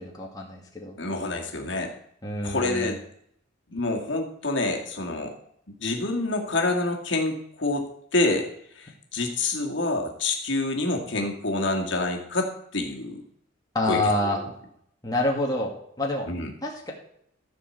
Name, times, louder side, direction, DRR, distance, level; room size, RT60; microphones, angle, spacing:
voice 1, 0.0-1.0 2.2-2.9 13.7-14.4 15.0-16.3 16.6-16.9, left 1 dB, 20° left, -2 dB, 2.0 m, -27 dB
voice 2, 1.0-1.9 2.4-3.0 3.7-5.3 5.8-7.8 8.1-8.5 8.8-13.2 13.9-14.0 14.2-14.3 16.3-16.5, left 2 dB, 65° left, 1 dB, 2.1 m, -27 dB
14.5 x 4.9 x 7.8 m, 0.69 s
head